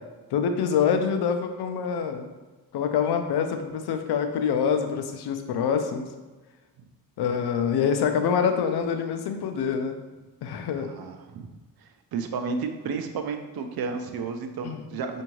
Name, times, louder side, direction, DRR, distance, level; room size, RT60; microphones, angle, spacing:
voice 1, 0.3-2.3 2.7-6.1 7.2-10.0 10.4-10.9 14.6-14.8, left 7 dB, 90° left, 6 dB, 0.5 m, -25 dB
voice 2, 10.8-11.5 11.8-15.2, right 5 dB, 70° right, 6 dB, 0.5 m, -32 dB
4.5 x 2.6 x 3.0 m, 1.2 s
cardioid pair, 100°, 38 cm